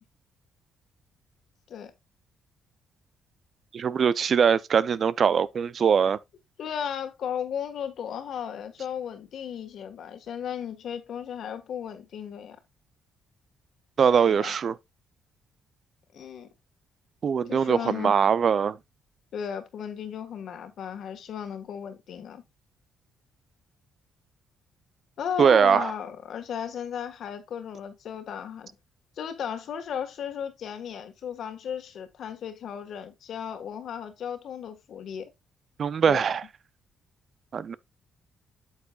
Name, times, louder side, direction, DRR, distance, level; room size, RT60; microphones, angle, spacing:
voice 1, 3.7-6.2 14.0-14.7 17.2-18.8 25.4-25.9 35.8-36.4 37.5-37.7, right 7 dB, 50° right, 0.5 m, -22 dB
voice 2, 6.6-12.6 14.3-14.5 16.1-16.5 17.5-18.1 19.3-22.4 25.2-28.7 29.2-35.3 36.0-36.3, left 8 dB, 65° left, 1.5 m, -35 dB
8.6 x 7.2 x 2.4 m
cardioid pair, 90°, 0 cm